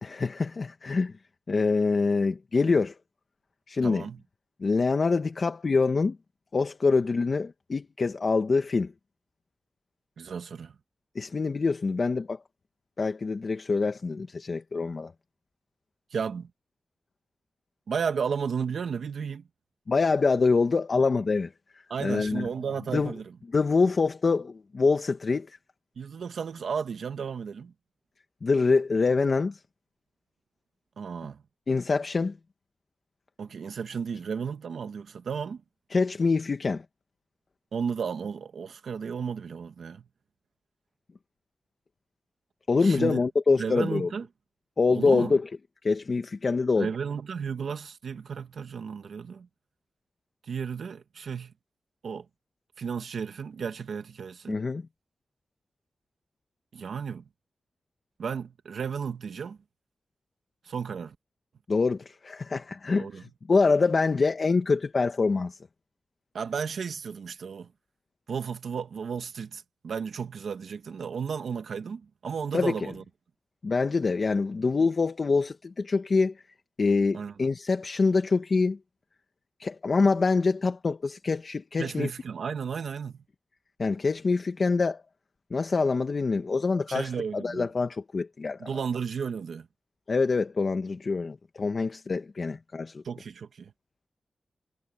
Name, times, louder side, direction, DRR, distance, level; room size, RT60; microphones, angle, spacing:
voice 1, 0.0-1.1 1.5-2.9 3.7-4.1 4.6-6.2 6.5-8.9 11.1-12.4 13.0-15.1 19.9-22.5 22.9-23.1 23.5-25.6 28.4-29.6 31.7-32.4 35.9-36.8 42.7-44.1 44.8-45.5 45.8-46.9 54.5-54.9 61.7-65.6 72.5-72.9 73.6-76.3 76.8-78.8 79.6-82.1 83.8-85.0 85.5-88.7 90.1-93.0, left 4 dB, 50° left, 1.3 m, -25 dB
voice 2, 3.8-4.2 10.2-10.7 16.1-16.5 17.9-19.4 21.9-23.2 26.0-27.7 31.0-31.4 33.4-35.6 37.7-40.0 42.8-43.2 43.6-44.2 44.9-45.4 46.8-49.5 50.5-51.5 52.0-52.2 52.8-54.6 56.7-57.2 58.2-59.6 60.6-61.1 63.0-63.2 66.3-67.7 68.3-73.0 77.1-77.3 81.8-83.2 86.9-87.7 88.6-89.7 93.0-93.7, right 6 dB, 90° right, 1.6 m, -33 dB
wide cardioid pair, 110°, 0 cm